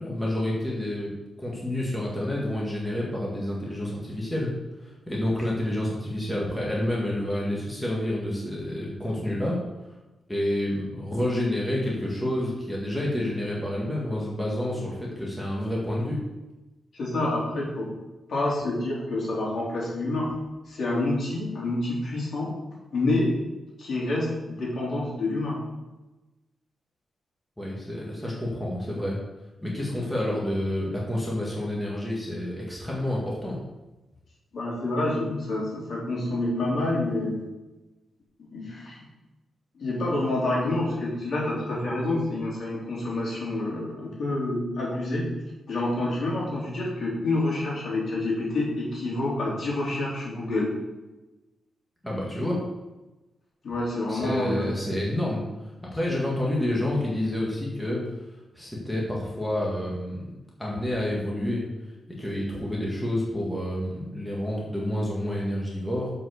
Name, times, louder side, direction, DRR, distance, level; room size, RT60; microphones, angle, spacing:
voice 1, 0.0-4.5 4.8-9.9 10.3-16.2 27.6-29.2 29.6-33.6 52.0-52.6 54.1-58.0 58.5-60.3 60.6-66.1, left 1 dB, 5° left, -5 dB, 1.9 m, -29 dB
voice 2, 16.9-17.9 18.3-20.3 20.7-22.5 22.9-23.3 23.8-25.6 34.5-37.4 38.5-39.0 39.8-45.2 45.7-50.7 53.6-54.7, left 2 dB, 55° left, -5 dB, 3.5 m, -28 dB
7.3 x 5.5 x 6.6 m, 1.1 s
wide cardioid pair, 120°, 0 cm